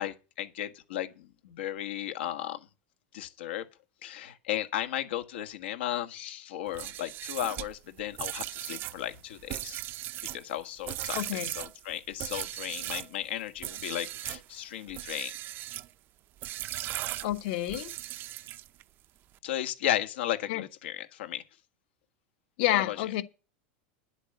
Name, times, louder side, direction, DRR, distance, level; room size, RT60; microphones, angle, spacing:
voice 1, 0.0-2.6 3.1-3.6 4.0-9.8 10.3-15.3 19.4-21.4 22.7-22.9, left 12 dB, 85° left, 1.6 m, -35 dB
sound 1, 6.7-13.1 13.6-14.4 14.9-15.9 16.4-18.8, right 14 dB, 40° right, 0.6 m, -38 dB
voice 2, 11.1-11.5 17.2-17.9 20.5-20.6 22.6-23.2, left 15 dB, 60° left, 1.3 m, -29 dB
10.5 x 8.1 x 6.7 m
supercardioid pair, 145°, 6 cm